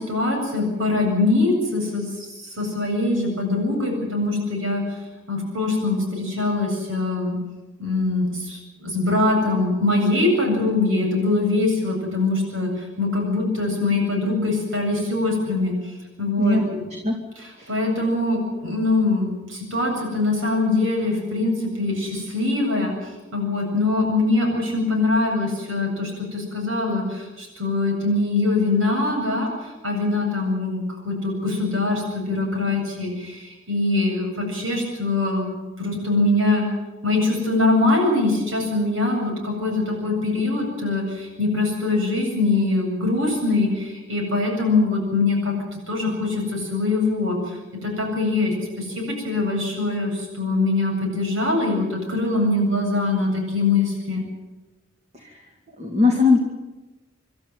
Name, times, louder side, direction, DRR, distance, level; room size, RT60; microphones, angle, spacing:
voice 1, 0.0-5.0 5.3-7.4 7.8-16.9 17.4-22.9 23.3-36.7 37.0-54.2, left 2 dB, 75° right, 1 dB, 7.9 m, -23 dB
voice 2, 16.4-17.2 17.6-17.7 55.1-55.4 55.8-56.4, left 3 dB, 35° right, 3 dB, 2.3 m, -20 dB
27.0 x 12.5 x 9.4 m, 1.1 s
head